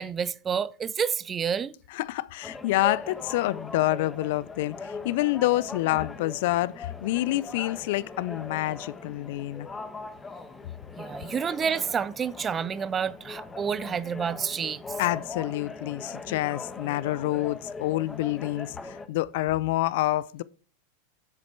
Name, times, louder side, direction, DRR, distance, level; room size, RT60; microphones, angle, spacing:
voice 1, 0.0-1.7 11.0-14.8, right 7 dB, 25° right, 0.5 m, -29 dB
voice 2, 1.9-9.7 15.0-20.4, left 17 dB, 60° left, 0.4 m, -27 dB
sound 1, 2.4-19.1, left 3 dB, 15° left, 1.1 m, -40 dB
7.5 x 7.5 x 4.5 m
hypercardioid pair, 100°, 0 cm